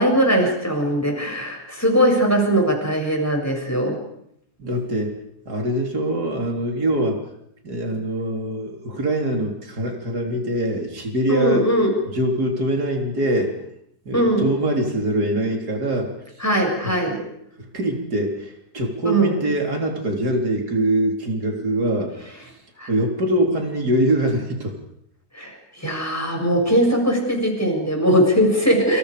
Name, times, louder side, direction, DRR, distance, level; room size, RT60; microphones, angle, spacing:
voice 1, 0.0-4.0 11.3-11.9 14.1-14.5 16.4-17.2 19.0-19.3 22.8-22.9 25.3-29.0, right 1 dB, 10° left, 0 dB, 7.6 m, -20 dB
voice 2, 4.6-5.2 5.5-7.2 7.6-11.7 12.1-13.5 14.1-16.2 17.6-22.1 22.9-24.8, right 1 dB, 70° right, 2 dB, 4.3 m, -23 dB
30.0 x 27.5 x 5.1 m, 0.72 s
omnidirectional pair, 1.7 m